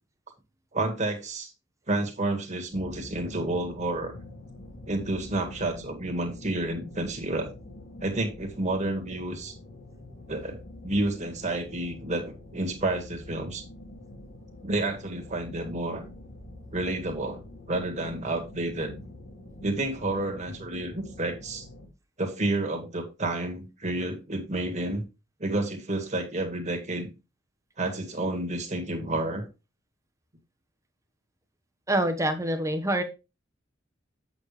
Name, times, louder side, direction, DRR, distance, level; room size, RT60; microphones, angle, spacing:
voice 1, 0.7-1.5 1.9-4.2 4.9-7.5 8.0-9.5 10.3-13.6 14.6-16.0 16.7-17.4 17.7-19.0 19.6-21.7 22.2-25.0 25.4-27.1 27.8-29.4, right 2 dB, 35° right, 4 dB, 1.9 m, -30 dB
sound 1, 2.7-21.9, left 1 dB, 55° left, 2.5 m, -46 dB
voice 2, 31.9-33.0, right 1 dB, 15° right, 7 dB, 1.1 m, -25 dB
8.0 x 6.7 x 3.3 m, 0.27 s
head